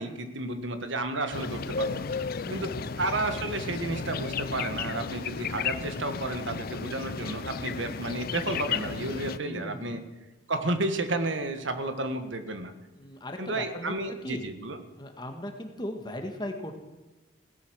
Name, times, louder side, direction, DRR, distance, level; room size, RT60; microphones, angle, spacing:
voice 1, 0.0-2.1 2.5-2.7 3.0-10.0 10.5-12.7 13.4-14.8, right 2 dB, 70° right, 8 dB, 1.6 m, -32 dB
sound 1, 1.3-9.4, left 5 dB, 50° left, 0.5 m, -34 dB
voice 2, 2.4-2.9 9.4-10.0 12.9-13.9 14.2-14.4 15.0-16.8, left 1 dB, 20° left, 4 dB, 1.8 m, -38 dB
17.0 x 13.0 x 6.4 m, 1.1 s
head